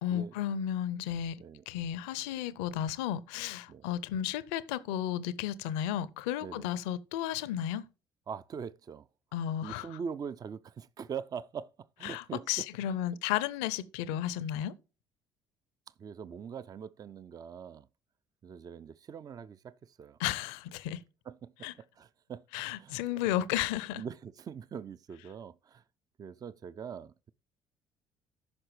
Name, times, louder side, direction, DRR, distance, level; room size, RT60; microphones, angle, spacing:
voice 1, 0.0-7.8 9.3-10.0 12.0-14.7 20.2-21.0 21.6-21.7 22.5-24.0, left 11 dB, 70° left, 0.6 m, -33 dB
voice 2, 8.3-9.1 9.6-11.7 12.0-13.0 16.0-17.9 18.4-20.2 21.3-22.4 22.8-23.0 24.0-25.8 26.2-27.1, right 7 dB, 30° right, 0.4 m, -42 dB
14.0 x 5.8 x 3.2 m
figure-of-eight pair, 55°, 12 cm